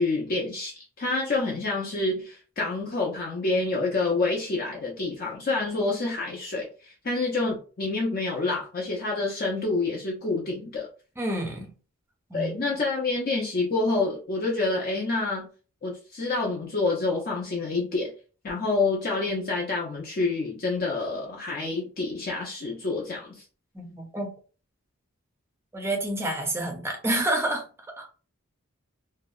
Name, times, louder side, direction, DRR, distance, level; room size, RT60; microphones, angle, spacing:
voice 1, 0.0-10.9 12.3-15.5 15.8-18.1 18.4-23.4, left 3 dB, 40° left, -2 dB, 0.5 m, -28 dB
voice 2, 11.2-11.7 12.3-12.5 23.7-24.3 25.7-27.6 28.0-28.1, right 1 dB, 10° right, 1 dB, 0.5 m, -28 dB
2.7 x 2.0 x 2.3 m, 0.36 s
head